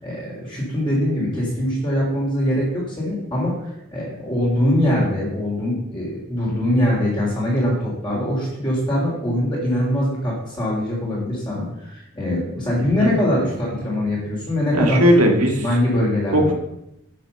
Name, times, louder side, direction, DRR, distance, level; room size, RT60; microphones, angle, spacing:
voice 1, 0.0-15.0 15.4-16.5, left 1 dB, 20° left, -5 dB, 3.5 m, -22 dB
voice 2, 12.8-13.1 14.7-15.6 16.3-16.5, equal, 90° right, 3 dB, 1.9 m, -17 dB
10.0 x 6.0 x 7.0 m, 0.85 s
head